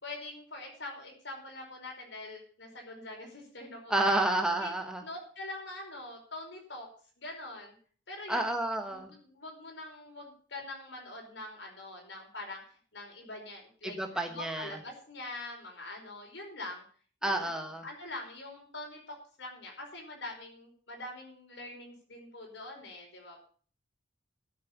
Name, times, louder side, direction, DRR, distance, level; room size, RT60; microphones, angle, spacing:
voice 1, 0.0-4.2 4.6-4.7 5.0-6.9 7.2-7.8 8.1-8.5 8.9-16.8 17.2-23.5, left 2 dB, 65° left, 1 dB, 5.2 m, -44 dB
voice 2, 3.9-5.0 8.3-9.1 13.8-14.8 17.2-17.8, right 2 dB, 5° right, 3 dB, 1.2 m, -30 dB
13.5 x 7.4 x 7.2 m, 0.43 s
head